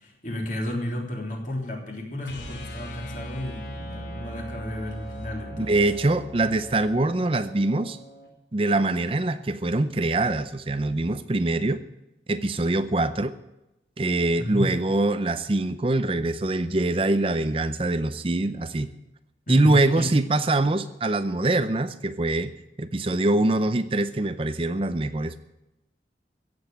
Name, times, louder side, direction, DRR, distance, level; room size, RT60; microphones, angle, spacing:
voice 1, 0.0-5.9 14.3-14.6 19.5-20.1, left 1 dB, 45° left, 0 dB, 3.5 m, -33 dB
sound 1, 2.2-8.3, equal, 80° left, 3.6 m, -39 dB
voice 2, 5.6-8.0 8.5-11.8 12.3-13.3 14.0-18.9 19.5-22.5 22.8-25.4, right 2 dB, 30° right, 11 dB, 0.5 m, -24 dB
15.5 x 7.9 x 9.1 m, 0.94 s
head